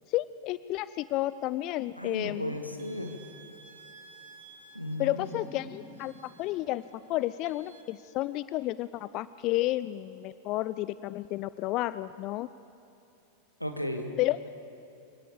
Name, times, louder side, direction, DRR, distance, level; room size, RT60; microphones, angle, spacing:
voice 1, 0.1-2.5 5.0-6.8 7.1-12.5 14.2-14.4, left 16 dB, 40° left, 16 dB, 0.4 m, -31 dB
voice 2, 2.0-3.2 4.7-5.5 13.6-14.1, left 1 dB, 90° left, 5 dB, 1.8 m, -35 dB
sound 1, 2.8-7.8, right 4 dB, 60° right, 2.4 m, -55 dB
sound 2, 4.7-7.9, left 2 dB, 20° left, 1.9 m, -52 dB
24.5 x 17.5 x 7.1 m, 2.9 s
figure-of-eight pair, 90°, 0 cm